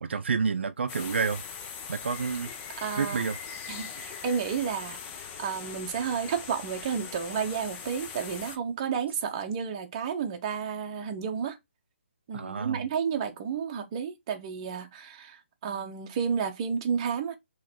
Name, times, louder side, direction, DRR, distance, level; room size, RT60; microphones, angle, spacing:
voice 1, 0.0-1.4 1.9-2.5 2.8-3.4 12.3-12.9, right 5 dB, 65° right, 0.5 m, -29 dB
sound 1, 0.9-8.6, left 6 dB, 15° left, 0.5 m, -41 dB
voice 2, 2.8-3.2 3.7-11.6 12.3-17.4, right 7 dB, 25° right, 0.8 m, -31 dB
3.7 x 3.1 x 4.4 m
hypercardioid pair, 160°, 6 cm